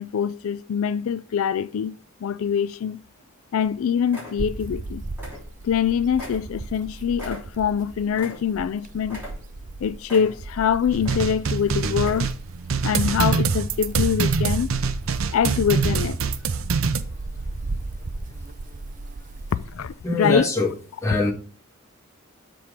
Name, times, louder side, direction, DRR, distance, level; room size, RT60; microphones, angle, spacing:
voice 1, 0.0-3.0 3.5-5.0 5.6-9.2 9.8-12.3 12.8-14.7 15.3-16.2 19.5-20.5, left 7 dB, 85° left, 0.4 m, -24 dB
sound 1, 2.6-3.2 3.6-3.7 4.1-4.8 5.1-5.8 6.2-8.7 9.1-9.7 10.1-10.6 11.0-11.6 11.9-12.5 12.9-13.0, left 1 dB, 10° right, 3.5 m, -40 dB
sound 2, 4.4-20.0, right 2 dB, 40° right, 0.6 m, -36 dB
sound 3, 10.9-17.0, right 5 dB, 80° right, 0.6 m, -24 dB
voice 2, 20.0-20.7 21.0-21.3, left 2 dB, 15° left, 1.7 m, -22 dB
7.6 x 4.4 x 5.0 m
head